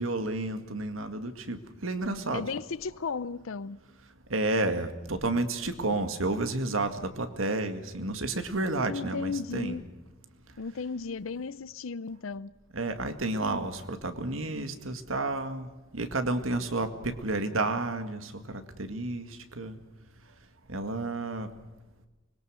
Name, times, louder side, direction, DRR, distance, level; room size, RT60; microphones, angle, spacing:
voice 1, 0.0-2.4 4.3-9.8 12.7-19.3 19.6-19.8 20.7-21.5, right 2 dB, 90° right, 2.0 m, -31 dB
voice 2, 2.3-3.8 8.8-9.9 10.6-12.5, left 5 dB, 85° left, 0.6 m, -35 dB
25.5 x 21.5 x 6.3 m
head